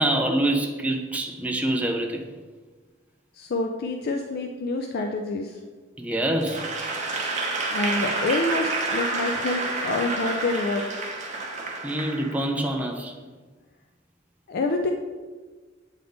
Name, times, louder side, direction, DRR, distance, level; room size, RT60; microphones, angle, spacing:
voice 1, 0.0-2.3 6.0-6.7 9.1-9.2 11.8-13.1, right 1 dB, 10° right, 2 dB, 0.4 m, -25 dB
voice 2, 3.4-5.6 7.7-10.8 14.5-14.9, left 2 dB, 55° left, 4 dB, 0.4 m, -27 dB
Applause / Crowd, 6.4-12.7, right 3 dB, 40° right, 0.8 m, -29 dB
8.0 x 3.4 x 3.9 m, 1.4 s
head